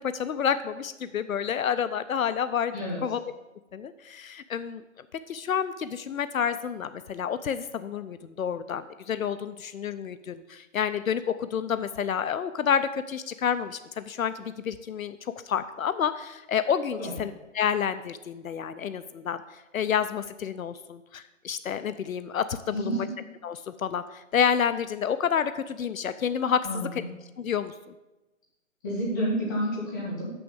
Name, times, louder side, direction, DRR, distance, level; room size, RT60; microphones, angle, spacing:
voice 1, 0.0-2.7 3.0-3.2 3.7-23.1 23.4-27.0 27.4-27.7, left 8 dB, 80° left, 13 dB, 0.6 m, -29 dB
voice 2, 22.7-23.1 26.6-27.0 28.8-30.3, equal, 15° left, -5 dB, 1.7 m, -30 dB
6.7 x 6.2 x 7.0 m, 1.0 s
hypercardioid pair, 175°, 41 cm